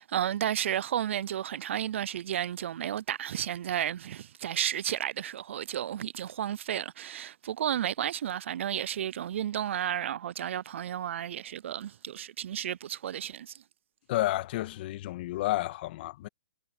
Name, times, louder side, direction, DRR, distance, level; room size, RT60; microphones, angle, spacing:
voice 1, 0.0-13.6, right 10 dB, 55° right, 0.5 m, -32 dB
voice 2, 14.1-16.3, left 16 dB, 40° left, 2.0 m, -31 dB
hypercardioid pair, 145°, 8 cm